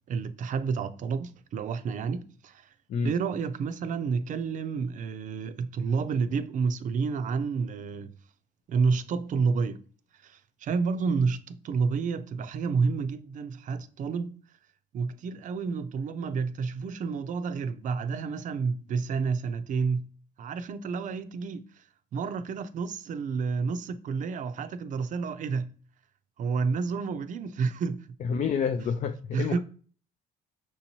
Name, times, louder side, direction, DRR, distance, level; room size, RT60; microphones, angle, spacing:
voice 1, 0.1-2.7 3.0-8.1 8.7-9.8 10.2-14.4 14.9-20.0 20.4-21.8 22.1-25.7 26.4-28.1 29.3-29.6, right 5 dB, 50° right, 0.5 m, -30 dB
voice 2, 28.2-29.6, left 6 dB, 45° left, 0.4 m, -28 dB
6.0 x 2.8 x 2.9 m
cardioid pair, 110°, 17 cm